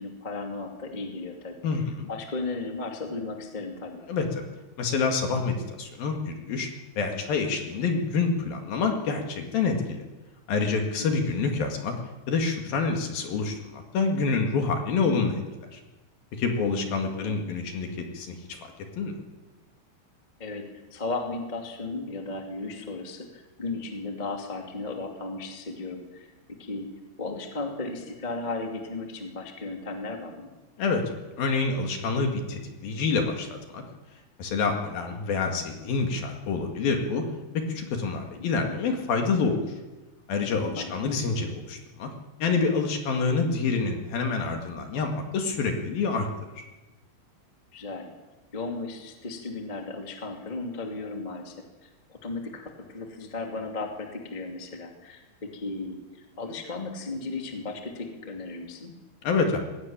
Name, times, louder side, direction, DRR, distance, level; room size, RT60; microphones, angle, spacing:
voice 1, 0.0-1.5 2.1-4.0 11.0-11.3 16.9-17.4 20.4-20.6 20.9-26.3 26.6-26.9 27.2-30.5 40.7-41.1 47.7-48.1 48.5-58.9, left 3 dB, 20° left, 2 dB, 1.1 m, -35 dB
voice 2, 1.6-2.1 4.1-4.4 4.8-6.7 7.0-10.0 10.5-11.9 12.3-15.4 15.7-15.8 16.4-18.7 19.0-19.1 30.8-33.8 34.4-37.2 37.7-39.6 40.3-42.1 42.4-46.3 59.2-59.6, left 4 dB, 55° left, 3 dB, 3.4 m, -27 dB
20.5 x 16.5 x 8.8 m, 1.1 s
omnidirectional pair, 5.5 m